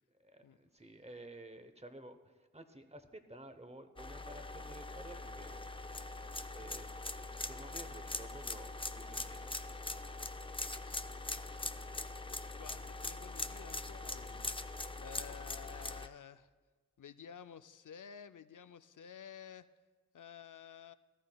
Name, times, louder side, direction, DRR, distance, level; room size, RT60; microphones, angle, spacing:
voice 1, 0.2-5.6 6.5-6.9 7.4-9.5, right 1 dB, 20° right, 9 dB, 0.8 m, -52 dB
sound 1, 4.0-16.1, left 2 dB, 15° left, 0.5 m, -42 dB
voice 2, 12.5-14.6 15.0-16.5 17.0-19.7 20.1-20.9, left 8 dB, 80° left, 12 dB, 0.5 m, -52 dB
17.0 x 14.0 x 2.3 m, 1.4 s
wide cardioid pair, 45°, 31 cm